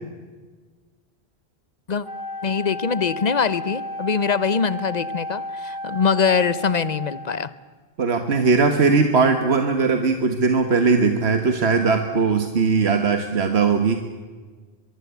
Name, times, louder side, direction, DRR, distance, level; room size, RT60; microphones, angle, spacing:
Wind instrument woodwind instrument, 2.0-7.5, left 1 dB, 25° right, 6.7 m, -33 dB
voice 1, 2.4-7.5, left 6 dB, 40° left, 16 dB, 1.0 m, -23 dB
voice 2, 8.0-14.0, right 4 dB, 80° right, 7 dB, 1.7 m, -19 dB
23.5 x 23.0 x 8.2 m, 1.4 s
omnidirectional pair, 1.1 m